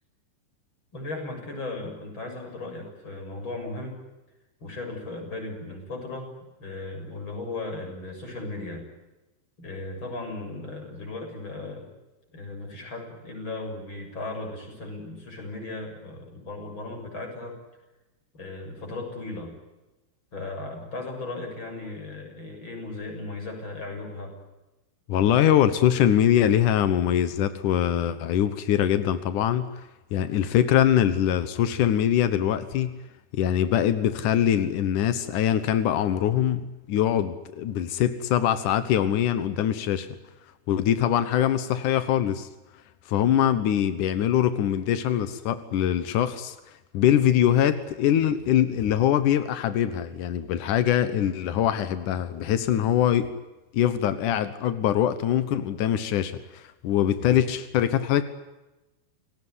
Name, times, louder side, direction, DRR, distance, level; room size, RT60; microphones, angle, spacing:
voice 1, 0.9-4.0 4.6-6.3 6.6-8.9 9.6-11.9 12.3-17.6 18.3-19.5 20.3-24.4, left 2 dB, 25° left, 4 dB, 7.5 m, -36 dB
voice 2, 25.1-29.8 30.1-33.0 33.3-36.6 36.9-40.1 40.7-42.5 43.1-46.6 46.9-53.3 53.7-58.2, left 10 dB, 80° left, 12 dB, 1.8 m, -23 dB
28.5 x 19.0 x 9.7 m, 1.0 s
omnidirectional pair, 5.6 m